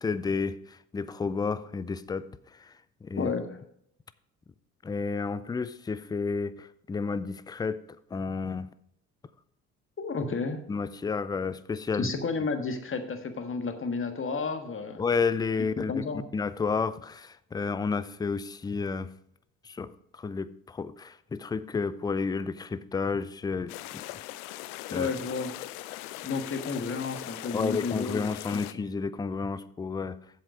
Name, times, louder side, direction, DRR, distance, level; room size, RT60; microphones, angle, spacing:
voice 1, 0.0-2.7 3.0-3.3 4.8-7.8 8.1-8.7 10.7-12.1 15.0-16.0 16.3-19.1 19.6-24.0 24.9-25.1 27.5-30.2, left 5 dB, 10° left, 16 dB, 0.4 m, -31 dB
voice 2, 3.2-3.6 10.0-10.6 12.0-15.0 15.9-16.2 24.9-25.6 26.2-28.8, left 4 dB, 25° left, 7 dB, 1.5 m, -32 dB
sound 1, 23.7-28.7, left 16 dB, 65° left, 0.6 m, -40 dB
7.9 x 7.5 x 4.9 m, 0.71 s
hypercardioid pair, 55°, 45 cm